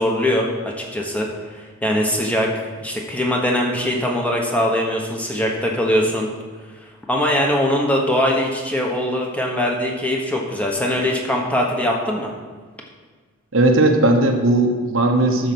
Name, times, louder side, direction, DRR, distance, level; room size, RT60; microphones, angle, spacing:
voice 1, 0.0-2.5 2.8-6.3 7.1-12.3, left 1 dB, 5° left, -1 dB, 1.1 m, -21 dB
voice 2, 13.5-15.5, right 2 dB, 65° right, 4 dB, 1.0 m, -17 dB
12.0 x 4.9 x 6.1 m, 1.5 s
head